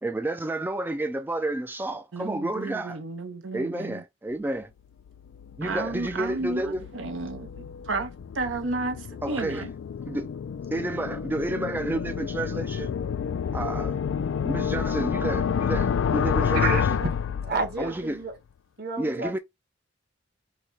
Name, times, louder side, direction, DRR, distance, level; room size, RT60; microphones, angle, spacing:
voice 1, 0.0-3.0 3.5-4.7 5.6-6.8 9.2-9.6 10.1-10.3 10.7-12.9 13.5-14.0 14.4-16.9 17.8-18.2 19.0-19.4, right 2 dB, 10° right, 0.3 m, -30 dB
voice 2, 2.1-4.0 5.6-9.7, right 3 dB, 75° right, 0.7 m, -32 dB
sound 1, 5.1-18.0, left 7 dB, 85° left, 0.4 m, -29 dB
voice 3, 16.5-17.1 17.4-18.3 18.8-19.4, right 3 dB, 55° right, 1.4 m, -30 dB
4.8 x 2.2 x 4.1 m
head